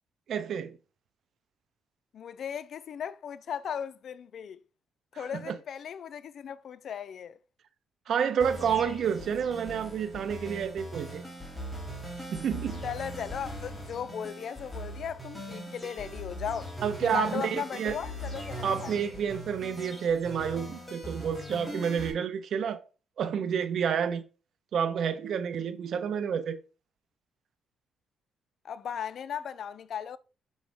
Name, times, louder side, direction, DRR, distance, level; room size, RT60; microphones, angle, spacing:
voice 1, 0.3-0.8 5.1-5.5 8.1-11.3 12.3-12.8 16.8-18.0 18.6-22.8 23.2-24.2 24.7-26.6, right 7 dB, 65° right, 0.7 m, -29 dB
voice 2, 2.1-4.6 5.1-7.4 12.8-16.7 17.0-18.9 28.6-30.2, left 8 dB, 60° left, 0.4 m, -37 dB
sound 1, 8.4-22.1, equal, 5° left, 2.5 m, -40 dB
6.3 x 5.1 x 3.4 m
cardioid pair, 90°, 0 cm